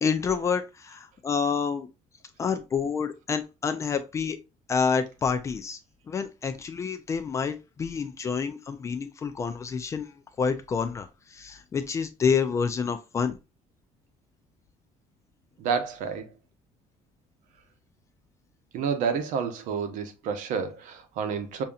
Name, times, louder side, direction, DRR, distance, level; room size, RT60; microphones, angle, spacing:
voice 1, 0.0-1.9 2.4-4.4 4.7-5.8 6.1-10.1 10.4-13.4, left 6 dB, 20° left, 0.3 m, -28 dB
voice 2, 15.6-16.3 18.7-21.6, right 6 dB, 70° right, 0.8 m, -29 dB
5.3 x 2.7 x 2.3 m
cardioid pair, 180°, 14 cm